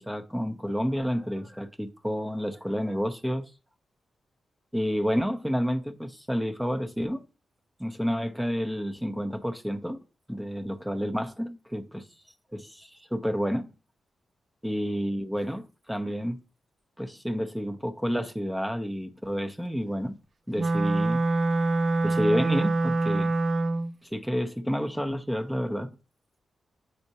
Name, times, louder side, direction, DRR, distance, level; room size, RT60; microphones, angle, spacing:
voice 1, 0.0-3.5 4.7-7.2 7.8-10.0 10.3-12.1 12.5-13.7 14.6-16.4 17.0-20.2 20.5-21.2 22.0-23.3 24.1-25.9, equal, 5° right, 0.8 m, -30 dB
Wind instrument woodwind instrument, 20.5-23.9, right 2 dB, 50° right, 0.4 m, -25 dB
8.0 x 4.3 x 2.8 m
cardioid pair, 60°, 0 cm